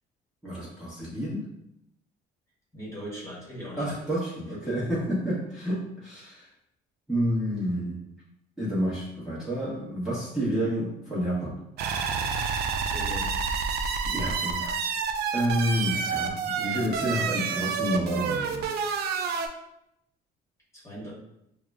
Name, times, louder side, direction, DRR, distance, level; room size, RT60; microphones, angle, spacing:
voice 1, 0.4-1.4 3.8-6.5 7.1-8.0 8.6-11.6 14.1-14.8 15.3-18.7, equal, ahead, -10 dB, 1.0 m, -29 dB
voice 2, 2.7-4.1 12.9-13.4 20.7-21.1, equal, 15° left, -6 dB, 1.2 m, -39 dB
sound 1, 11.8-19.5, right 6 dB, 70° right, 0.4 m, -29 dB
4.7 x 2.1 x 2.3 m, 0.80 s
cardioid pair, 110°, 17 cm